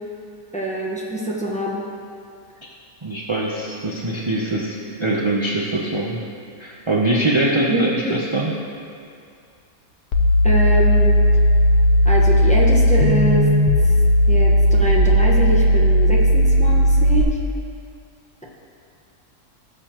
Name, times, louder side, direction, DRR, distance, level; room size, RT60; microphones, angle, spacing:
voice 1, 0.5-1.8 7.7-8.2 10.4-11.2 12.0-13.5 14.3-17.3, right 1 dB, 5° left, -4 dB, 1.1 m, -24 dB
voice 2, 3.0-6.2 6.6-8.5, right 2 dB, 25° right, -3 dB, 0.6 m, -22 dB
sound 1, 10.1-17.2, equal, 90° left, 1.4 m, -15 dB
18.0 x 6.8 x 3.0 m, 2.4 s
omnidirectional pair, 1.6 m